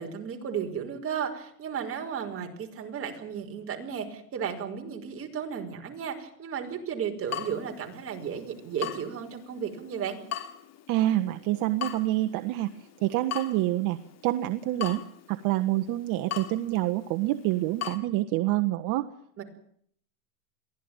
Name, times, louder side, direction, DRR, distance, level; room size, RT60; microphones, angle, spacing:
voice 1, 0.0-10.2 19.4-19.5, right 7 dB, 30° right, 4 dB, 5.4 m, -34 dB
Water tap faucet / Drip, 7.3-18.0, left 9 dB, 30° left, 3.3 m, -41 dB
voice 2, 10.9-14.0 14.2-15.0 15.3-19.1, right 15 dB, 45° right, 8 dB, 1.4 m, -27 dB
23.5 x 16.0 x 9.0 m, 0.64 s
supercardioid pair, 130°, 48 cm